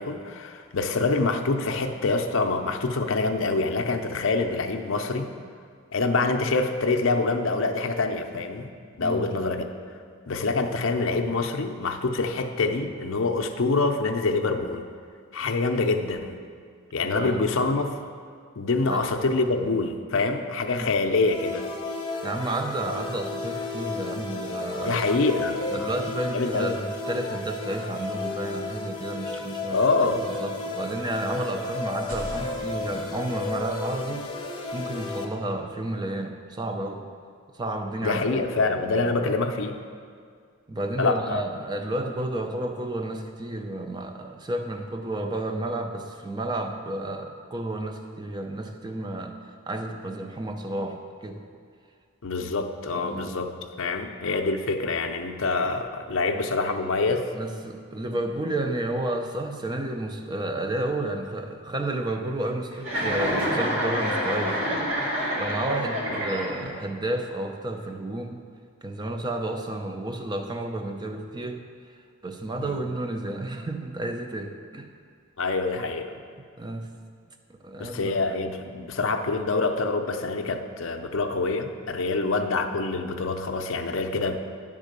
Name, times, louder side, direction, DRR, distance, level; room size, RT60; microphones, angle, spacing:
voice 1, 0.0-5.3 5.9-8.7 9.0-9.7 10.3-14.8 15.3-16.4 16.9-18.0 18.6-21.7 24.8-25.9 26.3-26.8 29.3-29.4 29.7-30.2 38.0-39.8 41.0-41.4 52.2-57.3 66.1-66.2 66.6-66.7 72.6-72.8 75.4-76.2 77.8-84.4, left 3 dB, 60° left, 5 dB, 0.5 m, -26 dB
voice 2, 9.0-9.3 17.0-17.4 18.9-19.1 20.8-20.9 22.2-25.0 25.7-34.3 34.7-37.0 37.5-38.5 40.7-49.4 49.7-51.4 52.9-53.4 57.3-64.8 65.4-68.4 68.8-71.6 72.2-74.9 76.6-76.9 77.5-78.2, right 1 dB, 20° right, 5 dB, 0.5 m, -31 dB
sound 1, 21.3-35.2, left 3 dB, 20° left, 0.7 m, -33 dB
sound 2, 31.9-35.8, equal, 85° right, 1.2 m, -44 dB
Chuckle chortle, 62.8-66.9, equal, 65° right, 1.8 m, -27 dB
10.5 x 3.7 x 6.6 m, 2.1 s
head